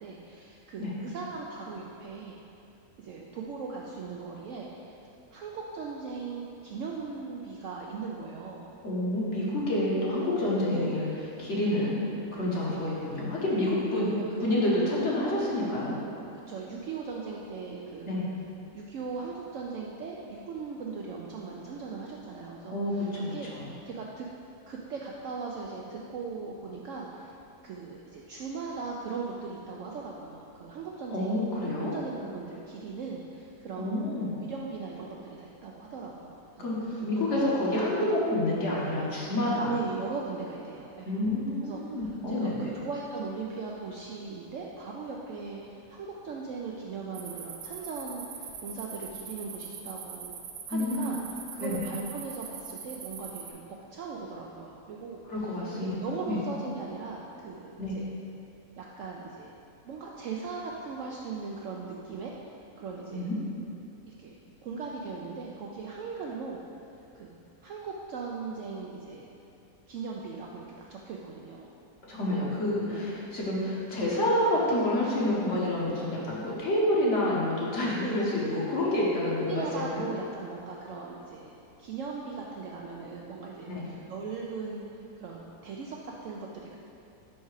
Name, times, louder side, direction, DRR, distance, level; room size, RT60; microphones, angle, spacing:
voice 1, 0.0-2.4 3.0-5.0 5.3-8.7 10.7-11.1 12.7-12.8 13.9-14.5 16.5-18.2 18.7-23.5 23.8-24.3 24.7-27.3 27.6-31.4 31.8-37.4 37.9-38.0 39.7-41.1 41.6-50.4 50.7-55.2 55.8-58.2 58.8-59.5 59.8-62.3 62.8-63.3 64.1-66.6 67.1-67.4 67.6-69.3 69.9-70.6 70.9-71.7 72.8-73.0 78.0-78.6 79.4-86.7, right 4 dB, 70° right, -2 dB, 0.7 m, -39 dB
voice 2, 8.8-11.1 11.4-14.1 14.4-16.0 18.1-18.3 22.7-23.7 31.1-31.9 33.8-34.3 36.6-39.7 41.0-42.7 50.7-51.1 51.6-51.8 55.3-56.0 56.3-56.4 57.8-57.9 63.1-63.4 72.0-79.7 79.9-80.0 83.7-83.9, left 1 dB, 50° left, -5 dB, 1.2 m, -28 dB
sound 1, 47.1-53.5, right 7 dB, 90° right, 1.2 m, -42 dB
5.4 x 4.7 x 4.7 m, 2.8 s
omnidirectional pair, 1.7 m